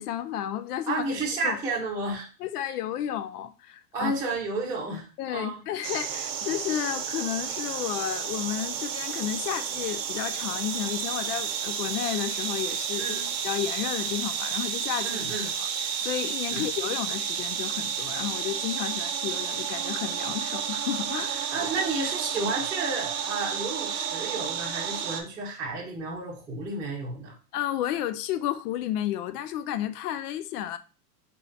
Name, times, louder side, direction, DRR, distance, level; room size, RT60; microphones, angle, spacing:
voice 1, 0.0-1.6 2.4-4.1 5.2-15.2 15.6-15.7 16.0-21.7 27.5-30.8, left 11 dB, 75° left, 0.7 m, -32 dB
voice 2, 0.9-2.3 3.9-5.6 13.0-13.3 15.0-15.5 16.5-16.7 21.5-27.3, right 3 dB, 5° right, 0.7 m, -32 dB
sound 1, 5.8-25.2, right 8 dB, 85° right, 0.9 m, -31 dB
4.2 x 3.7 x 2.7 m
supercardioid pair, 160°, 47 cm